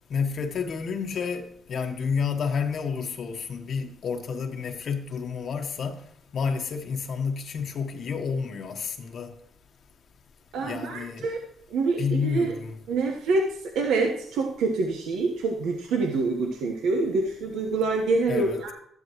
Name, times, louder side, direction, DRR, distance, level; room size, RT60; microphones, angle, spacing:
voice 1, 0.1-6.0 6.3-9.3 10.6-11.3 12.0-12.7 18.3-18.7, left 6 dB, 60° left, 1.1 m, -30 dB
voice 2, 10.5-11.4 11.7-12.5 12.9-13.5 13.7-18.7, right 3 dB, 85° right, 1.2 m, -26 dB
13.0 x 11.0 x 3.1 m
cardioid pair, 90°, 0 cm